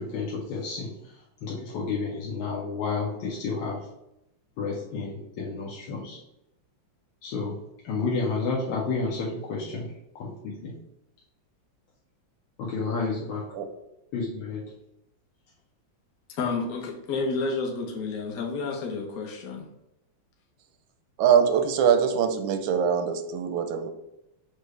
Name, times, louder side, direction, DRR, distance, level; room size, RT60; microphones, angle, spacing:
voice 1, 0.0-3.9 4.6-6.2 7.2-7.6 7.8-10.7 12.6-13.5 14.1-14.7, left 4 dB, 85° left, -4 dB, 1.5 m, -31 dB
voice 2, 16.3-19.7, left 4 dB, 60° left, -1 dB, 1.1 m, -30 dB
voice 3, 21.2-23.9, right 7 dB, 85° right, 8 dB, 1.4 m, -23 dB
6.1 x 2.3 x 3.2 m, 0.85 s
omnidirectional pair, 2.1 m